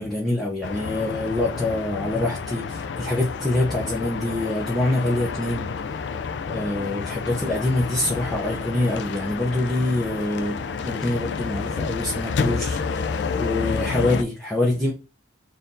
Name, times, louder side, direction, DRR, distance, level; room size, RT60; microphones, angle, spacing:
voice 1, 0.0-6.2 6.5-10.6 10.8-14.9, left 1 dB, ahead, -5 dB, 0.8 m, -25 dB
sound 1, 0.6-14.2, left 5 dB, 70° left, 0.4 m, -29 dB
4.3 x 2.7 x 3.7 m, 0.31 s
head